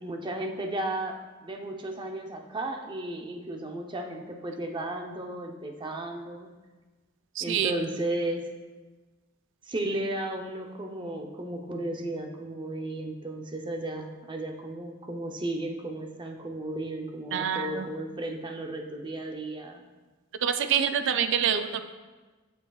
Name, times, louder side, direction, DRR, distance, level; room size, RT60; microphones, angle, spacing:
voice 1, 0.0-6.5 7.4-8.5 9.6-19.8, right 1 dB, 25° right, 3 dB, 0.6 m, -34 dB
voice 2, 7.4-7.7 17.3-17.9 20.4-21.8, right 8 dB, 60° right, 8 dB, 0.4 m, -26 dB
8.3 x 7.0 x 2.3 m, 1.3 s
head